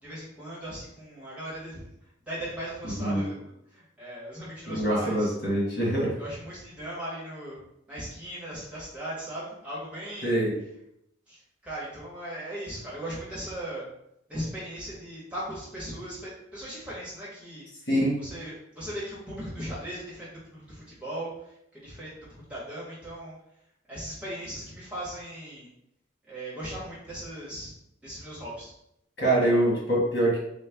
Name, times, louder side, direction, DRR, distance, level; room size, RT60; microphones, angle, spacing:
voice 1, 0.0-5.3 6.2-7.6 7.9-10.3 11.3-13.9 14.3-17.9 18.2-23.3 23.9-25.7 26.3-27.7 28.0-28.7, right 1 dB, 5° right, -8 dB, 1.3 m, -38 dB
voice 2, 4.7-6.1 10.2-10.5 17.9-18.2 29.2-30.4, right 1 dB, 60° left, -5 dB, 1.5 m, -24 dB
4.2 x 2.2 x 3.4 m, 0.78 s
head